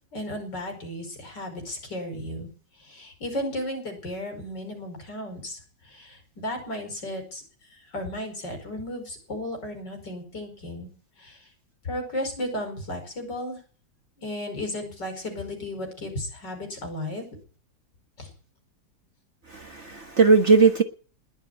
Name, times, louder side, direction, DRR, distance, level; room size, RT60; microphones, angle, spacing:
voice 1, 0.1-2.5 2.8-7.4 7.7-10.9 11.2-11.4 11.8-13.6 14.2-17.3 18.2-18.3, left 1 dB, 65° left, 5.9 m, -34 dB
voice 2, 19.5-20.8, right 4 dB, 40° right, 1.5 m, -18 dB
20.5 x 7.1 x 9.7 m
omnidirectional pair, 2.1 m